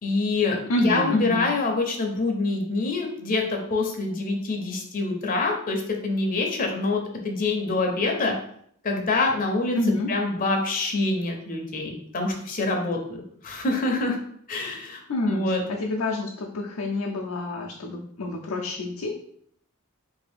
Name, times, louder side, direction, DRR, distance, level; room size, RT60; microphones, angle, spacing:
voice 1, 0.0-0.6 0.8-8.3 8.8-9.8 10.1-14.2 14.5-15.0 15.3-15.6, left 3 dB, 40° left, 2 dB, 0.6 m, -26 dB
voice 2, 0.7-1.4 9.8-10.1 15.1-19.1, left 1 dB, 85° left, -2 dB, 0.5 m, -27 dB
3.2 x 2.7 x 3.4 m, 0.65 s
head